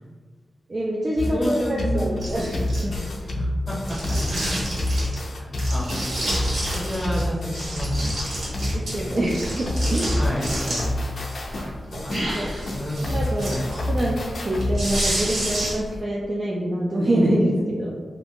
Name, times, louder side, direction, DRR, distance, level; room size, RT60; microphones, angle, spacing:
voice 1, 0.7-2.9 8.7-10.2 12.1-12.5 13.0-13.6 13.9-14.2 14.4-17.9, right 1 dB, 40° right, -4 dB, 0.4 m, -25 dB
sound 1, 1.2-9.3 9.7-15.2, left 1 dB, 65° left, 0.4 m, -28 dB
voice 2, 1.3-2.2 3.3-4.6 5.3-5.9 6.7-8.3 10.2-10.9 12.0-12.1 12.7-13.7, equal, 20° left, -6 dB, 0.8 m, -30 dB
sound 2, 2.2-3.2 3.8-5.2 5.6-7.2 7.5-11.1 11.5-16.0, right 1 dB, 75° right, 1.0 m, -30 dB
2.4 x 2.2 x 3.4 m, 1.5 s
wide cardioid pair, 130°, 0 cm